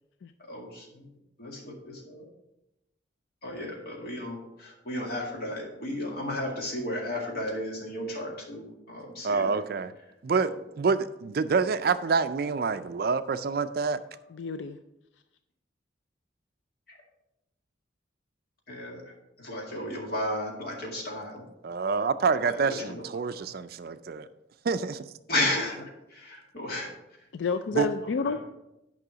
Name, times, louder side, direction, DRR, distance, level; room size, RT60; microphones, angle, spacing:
voice 1, 0.5-1.1 1.4-2.2 3.4-9.6 16.9-17.0 18.7-21.4 22.4-23.0 25.3-25.8 26.1-26.9 28.2-28.4, left 1 dB, 55° left, -1 dB, 2.1 m, -34 dB
voice 2, 9.2-9.9 10.2-14.0 21.6-24.3 24.6-25.0 27.7-27.9, right 5 dB, 50° right, 12 dB, 0.4 m, -27 dB
voice 3, 14.3-14.8 27.3-28.4, left 5 dB, 70° left, 10 dB, 0.4 m, -30 dB
9.5 x 5.4 x 5.0 m, 0.91 s
head